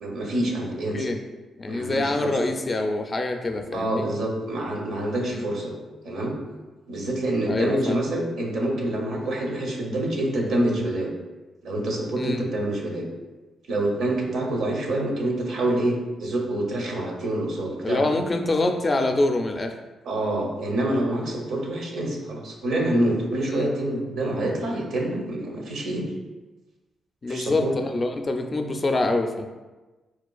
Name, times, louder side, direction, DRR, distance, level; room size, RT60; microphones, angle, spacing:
voice 1, 0.0-1.1 1.7-2.4 3.7-5.7 6.0-6.3 6.9-11.1 11.6-13.1 13.7-18.1 20.0-26.1 27.3-27.8, right 1 dB, 75° right, 0 dB, 0.7 m, -26 dB
voice 2, 1.6-4.1 5.3-5.5 7.5-8.0 12.2-12.4 17.8-19.7 23.5-23.7 27.2-29.5, left 2 dB, 40° left, 5 dB, 0.4 m, -25 dB
4.2 x 2.4 x 2.3 m, 1.2 s
supercardioid pair, 55°, 0 cm